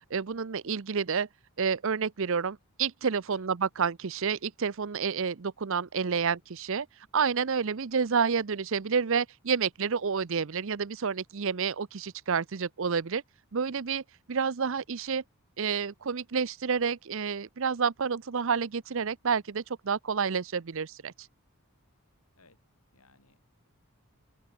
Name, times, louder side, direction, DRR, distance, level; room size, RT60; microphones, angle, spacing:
voice 1, 0.1-1.3 1.6-6.9 7.1-13.2 13.5-15.2 15.6-21.3, right 6 dB, 60° right, 0.6 m, -29 dB
voice 2, 6.0-6.3 22.3-22.6 22.9-23.7, left 3 dB, 80° left, 6.4 m, -62 dB
open air
head